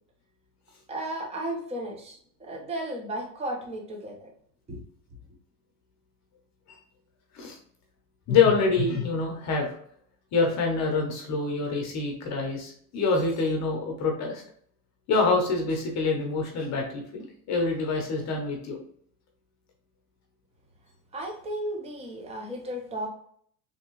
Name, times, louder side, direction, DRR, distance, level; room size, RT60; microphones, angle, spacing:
voice 1, 0.9-4.3 4.7-4.8 21.1-23.1, right 1 dB, 15° right, 0 dB, 0.7 m, -34 dB
voice 2, 8.3-9.7 10.3-14.4 15.1-18.8, left 4 dB, 35° left, 1 dB, 0.8 m, -26 dB
3.5 x 2.9 x 3.0 m, 0.62 s
supercardioid pair, 125°, 49 cm